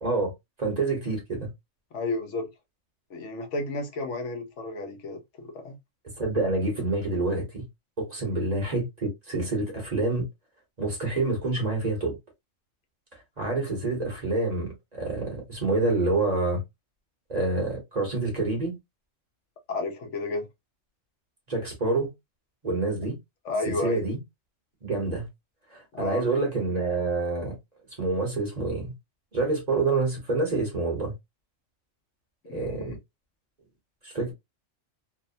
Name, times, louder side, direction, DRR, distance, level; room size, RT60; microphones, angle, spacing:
voice 1, 0.0-0.3 0.6-1.5 6.2-7.6 8.0-10.3 10.8-12.2 13.4-16.6 17.3-18.8 21.5-22.1 22.6-23.2 23.6-24.2 24.8-25.3 25.7-27.6 28.0-28.9 29.3-31.1 32.5-33.0 34.0-34.3, right 3 dB, 35° right, 1.0 m, -27 dB
voice 2, 1.9-2.5 3.1-5.8 19.7-20.5 23.4-24.0 25.9-26.2 32.5-33.0, left 2 dB, 75° left, 1.0 m, -32 dB
2.8 x 2.1 x 2.6 m
omnidirectional pair, 1.3 m